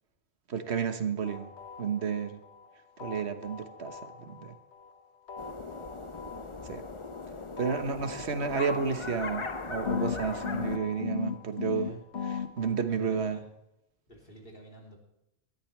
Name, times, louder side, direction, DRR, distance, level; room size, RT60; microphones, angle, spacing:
voice 1, 0.5-1.5 1.8-2.4 3.0-4.5 6.6-6.8 7.6-13.4, right 6 dB, 80° right, 8 dB, 1.4 m, -32 dB
sound 1, 1.2-2.7 3.0-4.9 5.3-7.2 7.6-9.5 9.9-12.7, left 7 dB, 80° left, 1.6 m, -38 dB
sound 2, 5.4-10.8, left 3 dB, 30° left, 0.8 m, -39 dB
voice 2, 11.6-12.1 12.8-13.4 14.1-15.0, right 1 dB, 60° left, -1 dB, 3.4 m, -51 dB
19.0 x 13.0 x 3.3 m, 0.87 s
omnidirectional pair, 1.1 m